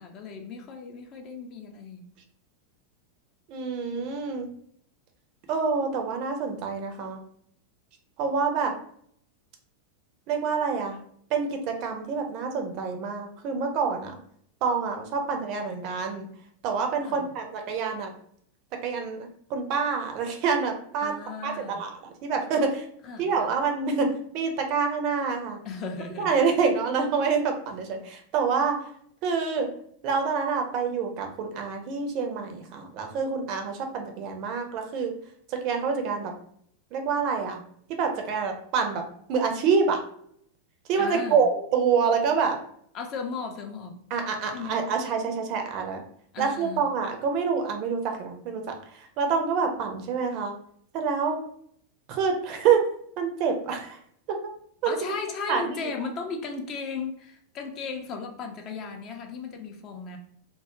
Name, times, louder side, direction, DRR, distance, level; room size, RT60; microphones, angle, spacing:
voice 1, 0.0-2.0 17.0-17.3 21.0-21.9 23.0-23.5 25.6-26.4 41.0-41.4 42.9-44.0 44.5-44.9 46.3-46.9 54.9-60.2, left 5 dB, 35° left, 4 dB, 0.4 m, -36 dB
voice 2, 3.5-4.5 5.5-7.2 8.2-8.7 10.3-11.0 11.3-14.2 14.6-16.3 16.6-18.1 18.8-21.1 21.4-21.9 22.2-22.8 23.2-25.6 26.2-28.7 29.2-29.7 30.0-35.1 35.6-36.3 36.9-37.6 38.0-39.0 39.3-40.0 40.9-42.6 44.1-46.0 46.4-48.6 49.2-50.5 50.9-51.4 52.1-52.8 53.2-54.0 54.3-54.5 54.8-54.9 55.5-55.9, right 5 dB, 40° right, 4 dB, 0.4 m, -27 dB
2.2 x 2.0 x 2.9 m, 0.65 s
figure-of-eight pair, 90°, 0 cm